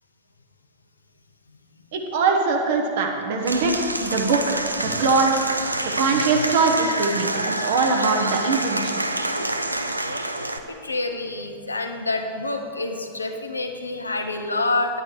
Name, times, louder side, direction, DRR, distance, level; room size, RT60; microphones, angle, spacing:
voice 1, 1.9-5.5 5.8-9.0, right 4 dB, 55° right, 2 dB, 0.8 m, -22 dB
Applause / Crowd, 3.4-10.6, right 1 dB, 85° right, 0.4 m, -27 dB
voice 2, 9.7-15.0, left 2 dB, 80° left, 5 dB, 0.6 m, -28 dB
9.9 x 9.7 x 3.1 m, 2.4 s
figure-of-eight pair, 90°, 0 cm